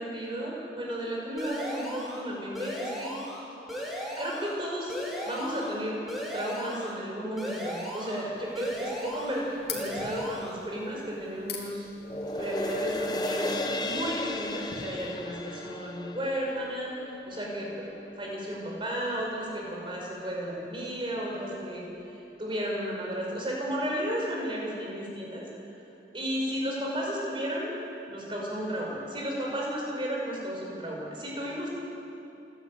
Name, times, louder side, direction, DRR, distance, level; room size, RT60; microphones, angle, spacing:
voice 1, 0.0-3.2 4.2-4.9 5.2-6.0 6.3-11.9 12.3-13.5 13.8-16.9 17.3-17.9 18.2-25.5 26.1-27.7 28.1-31.7, equal, 25° right, -2 dB, 5.6 m, -33 dB
sound 1, 1.4-2.2 2.5-3.4 3.7-4.5 4.9-5.7 6.1-6.9 7.4-8.2 8.5-9.4 9.7-10.5, equal, ahead, 4.1 m, -36 dB
sound 2, 8.4-14.9, left 7 dB, 60° left, 3.7 m, -45 dB
sound 3, 12.0-18.6 19.0-19.1, left 2 dB, 20° left, 1.1 m, -35 dB
28.5 x 12.5 x 9.2 m, 2.9 s
head